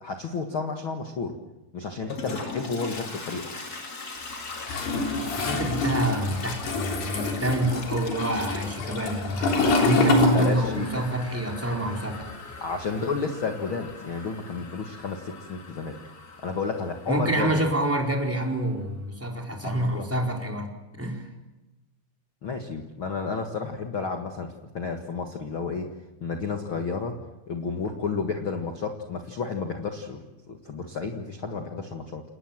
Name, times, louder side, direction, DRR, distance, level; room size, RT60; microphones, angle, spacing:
voice 1, 0.0-1.4 1.7-3.5 10.3-10.9 12.6-16.0 16.4-17.7 19.6-20.1 22.4-27.2 27.5-32.2, left 4 dB, 50° left, 4 dB, 1.7 m, -31 dB
Toilet flush, 1.9-18.7, left 3 dB, 30° left, 2.5 m, -41 dB
Toilet flush 2, 4.6-11.1 11.3-12.9, left 3 dB, 85° left, 5.6 m, -26 dB
voice 2, 5.3-12.2 17.1-20.7 21.0-21.2, right 1 dB, 5° right, 1 dB, 4.1 m, -27 dB
29.0 x 20.0 x 7.4 m, 1.0 s
omnidirectional pair, 4.5 m